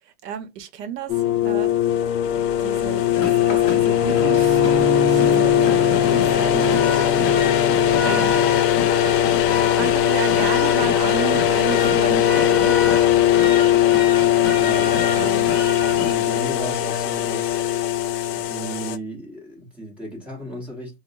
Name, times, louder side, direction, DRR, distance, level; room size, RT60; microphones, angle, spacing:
voice 1, 0.2-1.7 2.4-4.6 5.1-7.2 8.0-9.1 9.7-12.8 15.2-15.5, right 9 dB, 75° right, 0.8 m, -33 dB
sound 1, 1.1-19.0, left 11 dB, 75° left, 0.6 m, -19 dB
sound 2, 3.1-16.1, left 5 dB, 40° left, 1.2 m, -29 dB
Bowed string instrument, 4.2-8.7, right 3 dB, 50° right, 1.0 m, -28 dB
voice 2, 14.5-14.9 15.2-15.4 15.8-17.6 18.3-21.0, right 1 dB, 5° right, 0.9 m, -35 dB
3.6 x 2.1 x 2.5 m
supercardioid pair, 145°, 49 cm